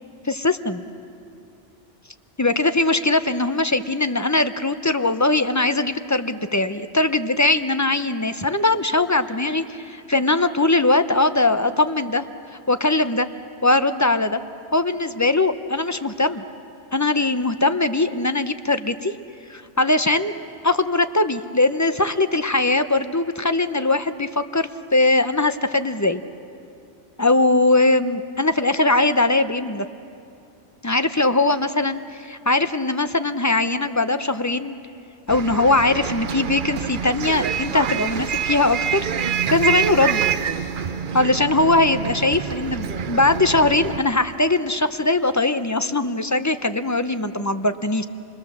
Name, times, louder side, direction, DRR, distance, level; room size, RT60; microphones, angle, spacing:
voice 1, 0.2-0.8 2.4-12.2 12.7-13.3 13.6-14.4 14.7-16.4 16.9-19.1 19.5-20.4 20.6-26.2 27.2-29.9 30.8-34.8 35.3-39.0 39.5-40.2 41.1-48.1, left 2 dB, 20° left, 10 dB, 0.5 m, -20 dB
Bus, 35.3-44.0, right 8 dB, 50° right, 0.8 m, -26 dB
28.0 x 21.0 x 7.3 m, 2.5 s
omnidirectional pair, 1.2 m